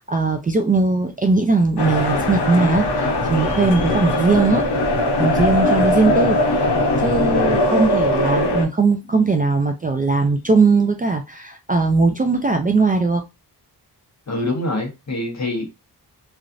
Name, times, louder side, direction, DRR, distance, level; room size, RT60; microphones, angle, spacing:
voice 1, 0.0-4.7 5.2-6.4 7.0-13.2, right 3 dB, 25° right, 0.3 m, -19 dB
sound 1, 1.8-8.6, left 1 dB, 90° left, 0.8 m, -20 dB
voice 2, 14.3-15.6, left 2 dB, 45° left, 1.1 m, -25 dB
3.1 x 2.4 x 2.5 m
wide cardioid pair, 105°, 39 cm